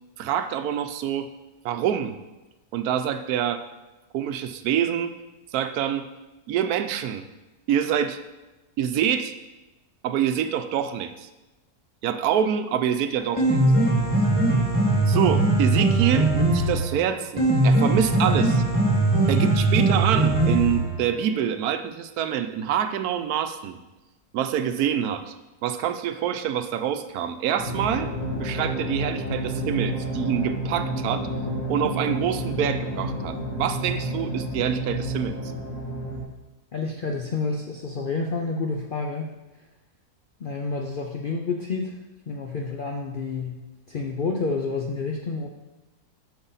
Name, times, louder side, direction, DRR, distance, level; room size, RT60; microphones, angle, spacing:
voice 1, 0.2-1.3 1.6-2.2 2.7-3.6 4.1-5.1 5.5-6.1 6.5-7.2 7.7-8.2 8.8-9.3 10.0-11.3 12.0-13.6 15.1-18.6 19.3-23.8 24.3-25.3 25.6-28.1 28.4-31.3 31.7-35.4, right 9 dB, 80° right, 9 dB, 1.1 m, -26 dB
Piano, 13.2-21.2, right 2 dB, 20° right, 1.7 m, -20 dB
sound 1, 27.6-36.2, equal, 30° left, 2.2 m, -30 dB
voice 2, 36.7-39.3 40.4-42.0 42.3-43.6 43.9-45.5, left 4 dB, 60° left, 1 dB, 0.5 m, -29 dB
8.0 x 5.9 x 3.9 m, 1.1 s
omnidirectional pair, 1.6 m